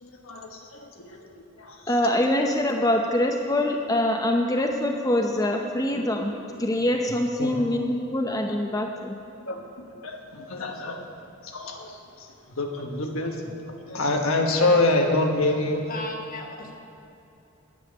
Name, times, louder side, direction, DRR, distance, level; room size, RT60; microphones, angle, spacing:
voice 1, 0.0-1.3 1.6-1.7 5.9-6.0 7.4-7.5 9.5-9.6 10.0-11.1 11.4-11.9 12.6-13.5 13.9-15.8, left 2 dB, 80° left, 3 dB, 1.3 m, -26 dB
voice 2, 1.9-6.3 6.6-9.2, left 1 dB, 15° left, 2 dB, 0.6 m, -24 dB
voice 3, 15.9-16.8, left 2 dB, 40° left, 2 dB, 1.2 m, -35 dB
10.0 x 7.0 x 9.0 m, 2.8 s
head